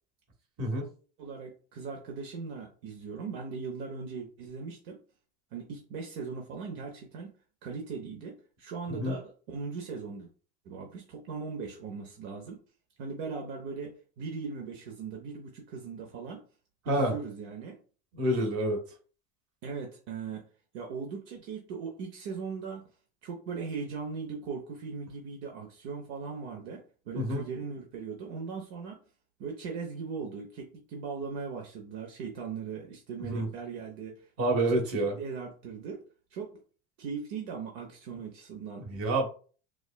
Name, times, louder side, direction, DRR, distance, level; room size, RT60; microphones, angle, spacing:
voice 1, 0.6-0.9 8.9-9.2 16.8-17.1 18.1-18.8 27.1-27.5 33.2-33.5 34.4-35.1 38.8-39.3, right 1 dB, 40° right, 1 dB, 1.3 m, -28 dB
voice 2, 1.2-5.0 5.5-7.3 7.6-10.3 10.6-12.6 13.0-16.4 16.9-17.8 19.6-20.4 20.7-22.8 23.2-29.0 29.4-34.3 34.7-36.0 36.3-36.6 37.0-38.8, right 5 dB, 65° right, 1 dB, 0.9 m, -39 dB
4.8 x 2.2 x 2.2 m, 0.39 s
supercardioid pair, 125°, 34 cm